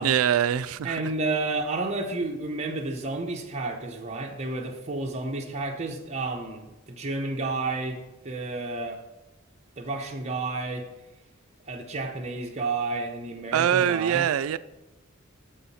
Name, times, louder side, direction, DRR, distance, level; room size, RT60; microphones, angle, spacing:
voice 1, 0.0-1.1 13.5-14.6, right 9 dB, 80° right, 0.3 m, -23 dB
voice 2, 0.8-8.0 8.2-9.0 9.8-10.9 11.7-14.3, right 3 dB, 35° right, 0.7 m, -31 dB
7.0 x 5.6 x 4.1 m
head